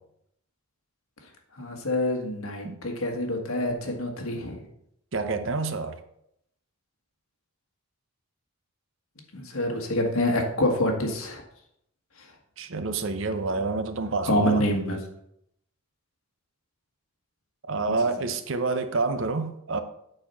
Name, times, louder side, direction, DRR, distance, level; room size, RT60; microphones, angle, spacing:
voice 1, 1.5-4.6 9.3-11.4 12.2-12.3 14.3-15.0, left 1 dB, 75° left, 1.6 m, -26 dB
voice 2, 5.1-6.0 12.6-14.6 17.6-19.8, right 3 dB, 60° right, 0.7 m, -28 dB
8.6 x 4.3 x 5.5 m
head